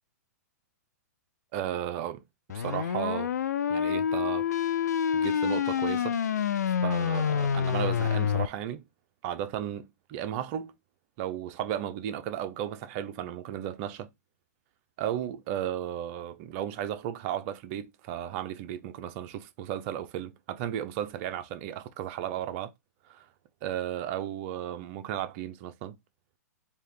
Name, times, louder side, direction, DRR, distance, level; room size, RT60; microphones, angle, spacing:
voice 1, 1.5-2.2 2.5-3.3 3.7-4.5 5.1-6.1 6.8-8.8 9.2-9.8 10.1-10.7 11.2-14.1 15.0-22.7 23.1-23.3 23.6-26.0, right 11 dB, 45° right, 0.6 m, -34 dB
sound 1, 2.5-8.5, left 8 dB, 85° left, 0.4 m, -27 dB
3.4 x 2.8 x 4.6 m
hypercardioid pair, 125°, 9 cm